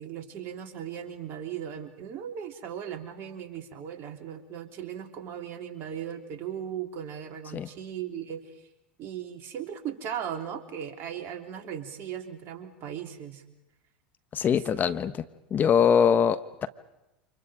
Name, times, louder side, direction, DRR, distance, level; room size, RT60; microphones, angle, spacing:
voice 1, 0.0-8.6 9.0-13.4 14.5-14.6, right 9 dB, 45° right, 4 dB, 3.6 m, -37 dB
voice 2, 14.3-15.2 15.5-16.7, left 7 dB, 35° left, 11 dB, 1.3 m, -23 dB
30.0 x 27.0 x 5.1 m, 0.93 s
hypercardioid pair, 85°, 5 cm